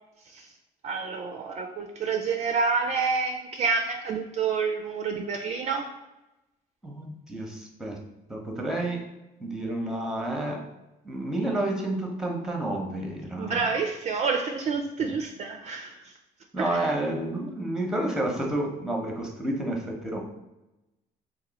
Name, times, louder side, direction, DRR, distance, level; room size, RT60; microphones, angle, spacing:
voice 1, 0.8-5.9 13.4-16.1 16.6-16.9, right 5 dB, 40° right, 3 dB, 0.4 m, -28 dB
voice 2, 6.8-8.0 8.3-9.0 9.4-10.6 11.0-13.6 15.0-15.1 16.5-20.2, right 1 dB, 5° right, 1 dB, 0.7 m, -30 dB
2.9 x 2.7 x 3.9 m, 0.98 s
cardioid pair, 110°, 17 cm